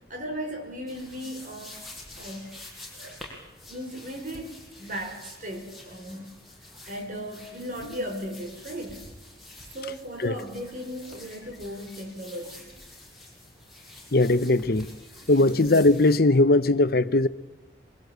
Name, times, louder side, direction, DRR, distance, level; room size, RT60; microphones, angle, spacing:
voice 1, 0.1-1.8 2.2-2.6 2.9-3.2 3.7-6.3 6.9-9.1 9.7-12.7 15.3-15.5, equal, 45° right, 5.6 m, -37 dB
sound 1, 0.9-16.2, left 1 dB, ahead, 6.4 m, -48 dB
voice 2, 14.1-14.9 15.3-17.3, left 2 dB, 55° left, 0.9 m, -20 dB
26.5 x 23.0 x 8.1 m
head